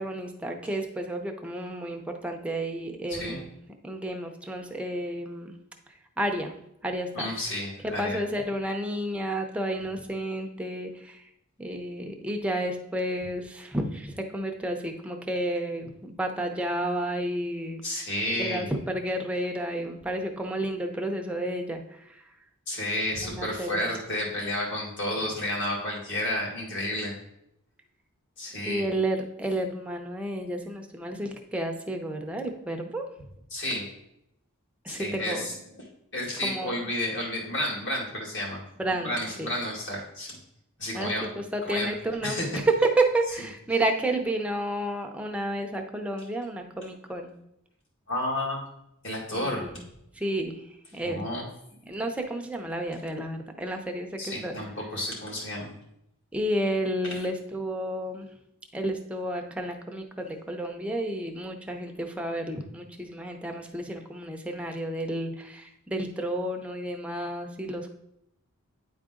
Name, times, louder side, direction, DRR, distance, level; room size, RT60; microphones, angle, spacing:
voice 1, 0.0-3.5 3.8-5.6 6.2-6.5 6.8-7.3 8.0-11.2 11.6-17.8 18.4-21.8 22.1-22.2 23.2-23.8 28.7-33.1 34.8-35.5 36.4-36.8 38.8-39.5 40.9-47.4 49.3-49.8 50.2-50.6 50.9-51.3 51.9-54.6 56.3-58.3 58.7-67.9, right 1 dB, 5° right, 3 dB, 0.6 m, -31 dB
voice 2, 7.1-8.2 17.8-18.7 22.7-27.1 28.4-28.8 33.5-33.9 34.9-35.5 36.1-38.6 39.0-40.4 40.8-41.3 41.6-41.9 42.2-42.6 48.1-48.6 49.0-49.7 51.0-51.5 54.2-55.7 57.1-57.2, left 1 dB, 55° left, -3 dB, 2.2 m, -31 dB
9.5 x 3.9 x 3.7 m, 0.80 s
head